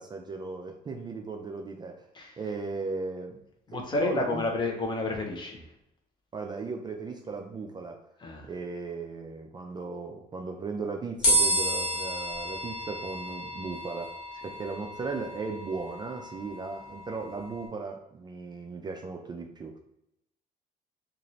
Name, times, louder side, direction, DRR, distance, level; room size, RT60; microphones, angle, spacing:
voice 1, 0.0-2.0 2.4-3.4 3.7-4.4 6.3-8.0 8.4-14.1 14.4-19.8, right 4 dB, 25° right, 2 dB, 0.3 m, -36 dB
voice 2, 3.7-5.7 8.2-8.5, left 3 dB, 25° left, 2 dB, 0.7 m, -30 dB
sound 1, 11.2-17.7, equal, 80° left, 1.1 m, -31 dB
2.6 x 2.4 x 3.0 m, 0.83 s
cardioid pair, 110°, 17 cm